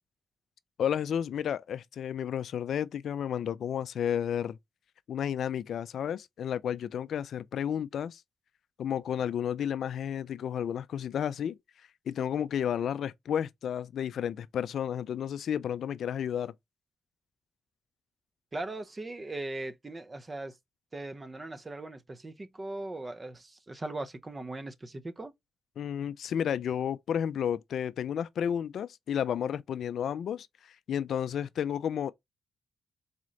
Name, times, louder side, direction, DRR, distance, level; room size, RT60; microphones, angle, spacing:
voice 1, 0.8-4.6 5.1-8.2 8.8-11.6 12.1-16.5 25.8-30.5 30.9-32.1, left 9 dB, 65° left, 0.3 m, -32 dB
voice 2, 18.5-20.5 20.9-25.3, right 2 dB, 20° right, 0.6 m, -39 dB
4.1 x 3.8 x 3.1 m
cardioid pair, 125°, 0 cm